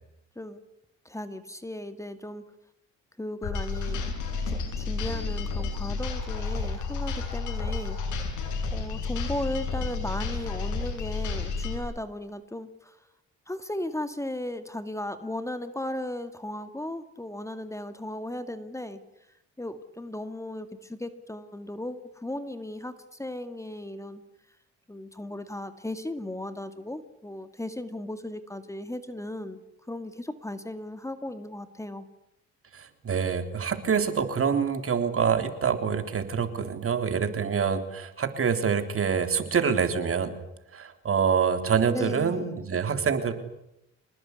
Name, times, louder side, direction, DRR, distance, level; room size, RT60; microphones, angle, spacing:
voice 1, 1.1-2.4 3.2-4.0 4.5-8.0 8.7-13.0 13.5-19.0 19.6-24.2 24.9-29.6 29.9-32.1 41.9-42.5, left 1 dB, 10° left, 10 dB, 2.0 m, -36 dB
sound 1, 3.4-11.8, left 4 dB, 80° left, 7.6 m, -31 dB
voice 2, 32.7-40.3 40.7-43.3, right 6 dB, 50° right, 8 dB, 3.7 m, -26 dB
27.0 x 19.5 x 9.8 m, 0.84 s
cardioid pair, 90°, 30 cm